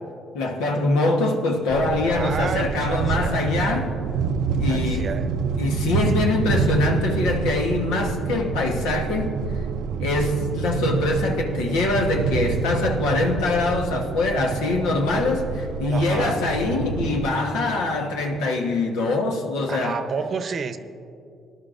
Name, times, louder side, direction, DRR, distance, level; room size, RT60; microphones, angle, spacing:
voice 1, 0.3-3.9 4.6-5.2 5.6-9.3 10.0-19.9, left 2 dB, 85° left, 2 dB, 1.2 m, -23 dB
sound 1, 1.7-17.3, right 5 dB, 80° right, 0.4 m, -27 dB
voice 2, 2.0-3.4 4.7-5.3 15.9-16.4 18.3-18.4 19.7-20.8, right 5 dB, 50° right, 10 dB, 0.7 m, -30 dB
18.5 x 11.0 x 2.6 m, 2.5 s
supercardioid pair, 65°, 0 cm